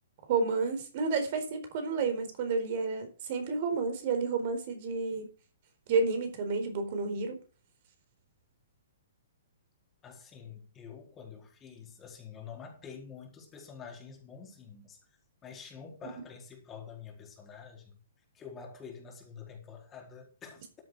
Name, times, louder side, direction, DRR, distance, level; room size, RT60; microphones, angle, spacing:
voice 1, 0.3-5.3 5.9-7.4, right 4 dB, 45° right, 4.3 m, -30 dB
voice 2, 10.0-15.0 15.4-18.0 18.3-20.6, left 6 dB, 20° left, 4.4 m, -47 dB
13.5 x 8.4 x 4.8 m
figure-of-eight pair, 120°, 0 cm